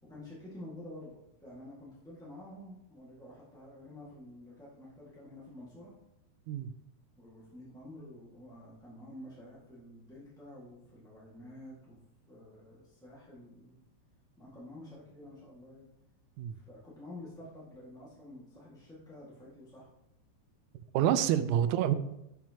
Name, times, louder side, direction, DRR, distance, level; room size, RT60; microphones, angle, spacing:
voice 1, 0.0-5.9 7.1-12.0 12.3-13.8 14.4-15.9 16.5-19.8, left 1 dB, 5° left, -7 dB, 0.8 m, -49 dB
voice 2, 20.9-22.0, right 10 dB, 80° right, 12 dB, 1.8 m, -27 dB
11.5 x 5.9 x 2.9 m, 0.83 s
omnidirectional pair, 3.6 m